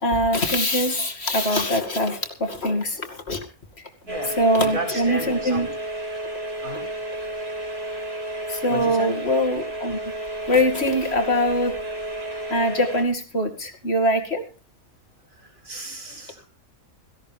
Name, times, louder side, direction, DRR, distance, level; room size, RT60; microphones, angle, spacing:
voice 1, 0.0-3.5 4.4-5.7 8.5-10.0 10.5-11.7 12.5-14.4, equal, 45° left, 4 dB, 2.7 m, -23 dB
voice 2, 4.0-5.7 6.6-6.9 8.7-9.1 15.3-16.5, right 1 dB, 70° right, 3 dB, 5.3 m, -34 dB
sound 1, 4.1-13.0, right 1 dB, 45° right, 5.1 m, -32 dB
17.5 x 16.5 x 3.5 m, 0.35 s
omnidirectional pair, 1.5 m